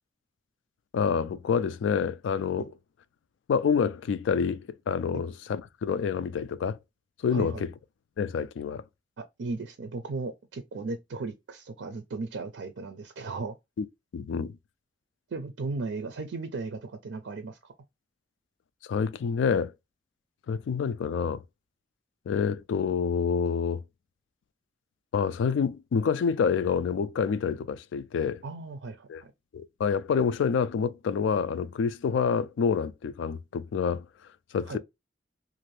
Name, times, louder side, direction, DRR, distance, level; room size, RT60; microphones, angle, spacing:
voice 1, 0.9-2.7 3.5-6.8 7.2-7.7 8.2-8.8 13.8-13.9 14.1-14.5 18.9-19.7 20.5-21.4 22.3-23.8 25.1-28.4 29.1-29.2 29.5-34.0 34.5-34.8, left 6 dB, 90° left, 0.3 m, -27 dB
voice 2, 7.3-7.6 9.4-13.6 15.3-17.7 28.4-29.3 34.7-34.8, right 3 dB, 90° right, 0.4 m, -36 dB
2.6 x 2.5 x 3.1 m
head